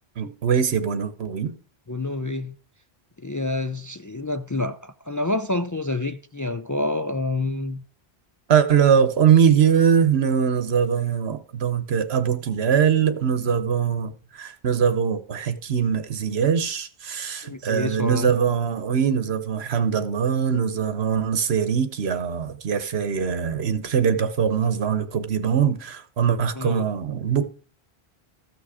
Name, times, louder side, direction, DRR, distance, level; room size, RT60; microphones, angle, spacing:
voice 1, 0.2-1.5 8.5-27.4, right 7 dB, 75° right, 1.3 m, -22 dB
voice 2, 1.9-2.5 3.2-7.8 17.4-18.3 26.5-26.8, left 2 dB, 30° left, 0.3 m, -28 dB
14.0 x 6.3 x 4.9 m
omnidirectional pair, 1.1 m